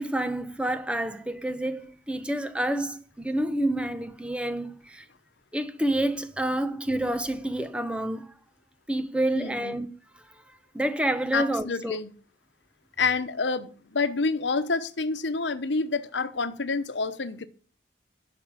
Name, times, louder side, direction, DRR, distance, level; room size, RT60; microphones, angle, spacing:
voice 1, 0.0-5.1 5.5-8.3 8.9-9.9 10.7-12.0, right 1 dB, 5° right, 0.8 m, -28 dB
voice 2, 9.3-9.8 11.3-12.1 13.0-17.5, left 4 dB, 90° left, 0.9 m, -28 dB
12.0 x 5.3 x 8.8 m
head